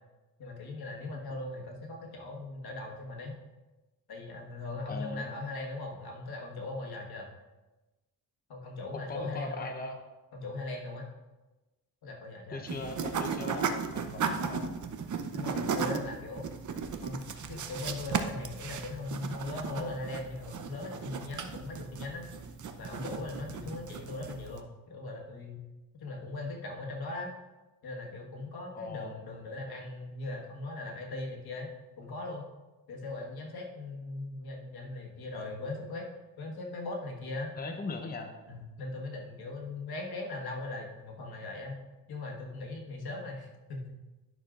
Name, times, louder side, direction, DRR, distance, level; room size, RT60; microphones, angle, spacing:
voice 1, 0.4-3.4 4.1-7.3 8.5-9.7 10.3-11.1 12.0-12.6 14.1-14.2 15.3-16.5 17.0-22.3 22.8-25.6 26.0-27.3 27.8-31.7 32.0-32.5 32.9-36.1 36.4-37.5 38.5-41.8 42.1-43.9, left 2 dB, 80° left, 0 dB, 1.6 m, -39 dB
voice 2, 4.9-5.3 9.1-10.0 12.5-14.7 28.7-29.2 37.6-38.3, left 3 dB, 25° left, 4 dB, 0.8 m, -39 dB
sound 1, 12.7-24.6, right 6 dB, 55° right, 0.8 m, -36 dB
12.0 x 6.5 x 2.5 m, 1.1 s
cardioid pair, 100°, 37 cm